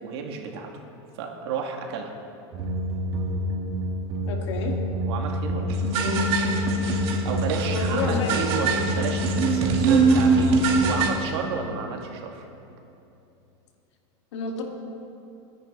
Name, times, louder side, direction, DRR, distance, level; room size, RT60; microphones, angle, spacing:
voice 1, 0.0-0.7 1.2-2.1 5.1-5.8 7.2-12.5, right 5 dB, 65° right, 1 dB, 2.2 m, -32 dB
sound 1, 2.5-11.1, right 2 dB, 40° right, 2.0 m, -23 dB
voice 2, 4.3-4.7 7.6-8.3 9.5-9.7 14.3-14.6, left 4 dB, 90° left, 1 dB, 2.4 m, -30 dB
28.0 x 10.5 x 4.0 m, 2.8 s
supercardioid pair, 160°, 15 cm